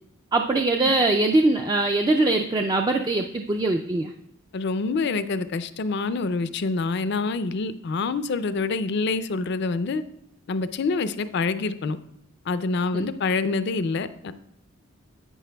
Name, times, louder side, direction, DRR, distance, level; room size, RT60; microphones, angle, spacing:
voice 1, 0.3-4.1 12.9-13.1, right 2 dB, 20° right, 3 dB, 0.3 m, -22 dB
voice 2, 4.5-10.0 10.5-12.0 12.5-14.3, left 3 dB, 55° left, 13 dB, 0.4 m, -26 dB
11.0 x 8.5 x 2.2 m, 0.75 s
head